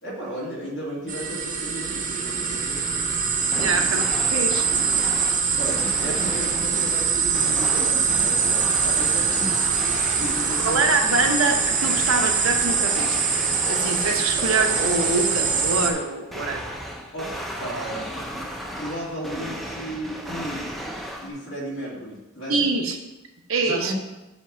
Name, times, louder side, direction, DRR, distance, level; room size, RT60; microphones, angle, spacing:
voice 1, 0.0-2.9 3.5-3.7 5.5-9.6 10.2-10.9 17.1-17.3 17.6-18.3 18.8-20.7 21.2-22.7 23.6-23.9, right 1 dB, 60° left, -6 dB, 2.7 m, -34 dB
sound 1, 1.1-15.9, right 5 dB, 40° right, 0.9 m, -23 dB
sound 2, 3.4-21.3, equal, ahead, 0.6 m, -35 dB
voice 2, 3.6-4.0 4.3-4.7 6.8-6.9 10.6-16.6 22.5-23.0 23.5-23.9, right 3 dB, 75° right, 4 dB, 0.8 m, -25 dB
8.1 x 3.0 x 6.2 m, 1.0 s
head